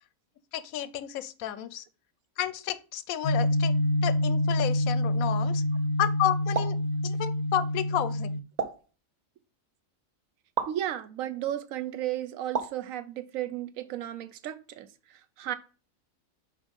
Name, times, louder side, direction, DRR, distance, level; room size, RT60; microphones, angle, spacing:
voice 1, 0.5-1.9 2.4-3.7 4.0-5.6 6.0-6.8 7.0-8.4, left 11 dB, 85° left, 1.1 m, -31 dB
sound 1, 3.2-8.4, left 1 dB, 60° left, 0.7 m, -27 dB
sound 2, 6.5-6.8 8.6-8.9 10.6-10.8 12.5-12.8, right 5 dB, 45° right, 0.6 m, -31 dB
voice 2, 10.7-15.5, right 12 dB, 75° right, 1.0 m, -34 dB
5.4 x 4.6 x 5.2 m
omnidirectional pair, 1.4 m